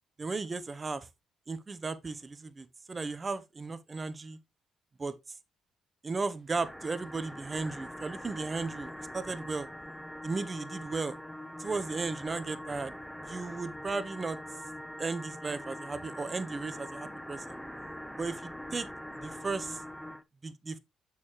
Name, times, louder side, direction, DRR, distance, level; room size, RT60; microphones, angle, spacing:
voice 1, 0.2-1.1 1.5-4.4 5.0-5.1 6.0-9.7 10.2-11.2 11.6-12.9 13.2-14.4 15.0-17.6 18.2-18.9 19.2-19.8 20.4-20.8, right 3 dB, 30° right, 0.9 m, -35 dB
sound 1, 6.5-20.2, equal, ahead, 0.6 m, -43 dB
7.0 x 6.7 x 2.9 m
cardioid pair, 90°, 0 cm